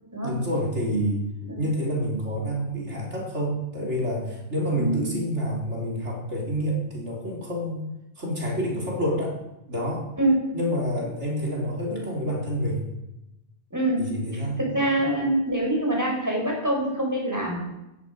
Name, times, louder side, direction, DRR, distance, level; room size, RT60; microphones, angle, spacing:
voice 1, 0.2-1.2 1.6-7.8 8.2-9.3 9.7-10.0 10.5-12.8 14.0-14.6, equal, 80° right, -2 dB, 4.0 m, -28 dB
voice 2, 4.7-5.1 10.2-10.4 13.7-14.1 14.3-17.6, right 1 dB, 15° right, -1 dB, 5.2 m, -25 dB
16.0 x 14.0 x 5.2 m, 0.94 s
omnidirectional pair, 1.2 m